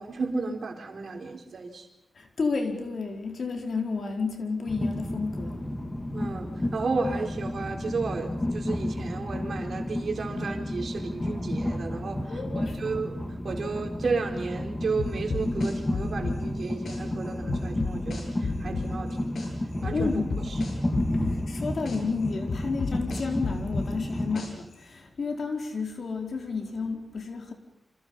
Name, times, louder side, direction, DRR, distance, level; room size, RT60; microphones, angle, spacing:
voice 1, 0.0-1.9 6.1-12.2 12.5-13.2 13.4-19.5 19.8-20.1, right 4 dB, 70° right, 4.4 m, -33 dB
voice 2, 2.2-5.7 12.3-12.8 19.9-20.3 21.5-27.5, left 4 dB, 65° left, 4.5 m, -31 dB
Train, 4.7-24.4, left 1 dB, 20° left, 2.4 m, -31 dB
sound 1, 15.0-17.0 17.5-19.5 19.8-22.0 22.5-24.7, left 4 dB, 85° left, 7.6 m, -32 dB
29.0 x 27.0 x 5.7 m
wide cardioid pair, 140°, 0 cm